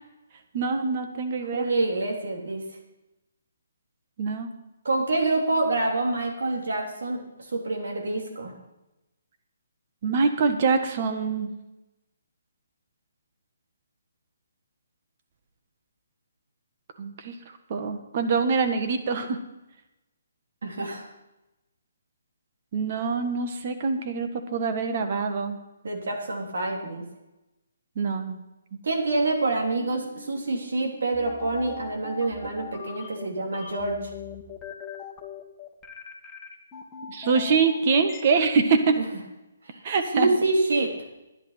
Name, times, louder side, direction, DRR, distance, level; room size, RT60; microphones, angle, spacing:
voice 1, 0.5-1.7 4.2-4.5 10.0-11.5 17.0-17.3 17.7-19.4 22.7-25.6 27.9-28.4 37.1-39.0 39.8-40.3, right 5 dB, 45° right, 7 dB, 1.6 m, -24 dB
voice 2, 1.5-2.6 4.8-8.5 20.6-21.1 25.8-27.0 28.8-34.1 39.0-39.1 39.6-39.8 40.1-40.9, right 2 dB, 70° right, 1 dB, 3.3 m, -27 dB
sound 1, 29.8-38.2, left 7 dB, 15° left, 1.8 m, -40 dB
11.0 x 10.5 x 5.8 m, 0.98 s
hypercardioid pair, 150°, 0 cm